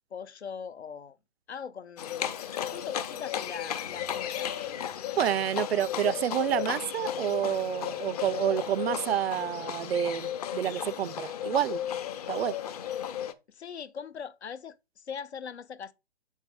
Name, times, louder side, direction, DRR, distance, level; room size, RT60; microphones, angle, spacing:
voice 1, 0.1-1.2 1.5-4.9 13.5-15.9, left 7 dB, 80° left, 0.8 m, -41 dB
Livestock farm animals working animals, 2.0-13.3, left 10 dB, 35° left, 0.7 m, -34 dB
voice 2, 5.2-11.8 12.3-12.6, right 10 dB, 65° right, 0.5 m, -29 dB
7.4 x 5.4 x 3.5 m
hypercardioid pair, 145°, 33 cm